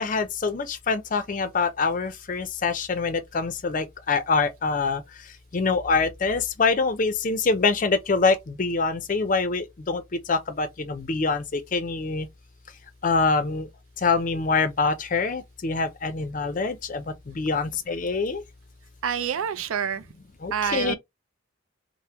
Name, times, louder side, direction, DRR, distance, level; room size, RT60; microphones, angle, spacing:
voice 1, 0.0-5.0 5.5-10.0 10.3-12.3 13.0-13.7 14.0-18.4 20.4-20.9, left 4 dB, 40° left, 0.5 m, -25 dB
voice 2, 19.0-20.1 20.5-20.9, right 7 dB, 85° right, 0.4 m, -27 dB
3.4 x 2.1 x 2.9 m
head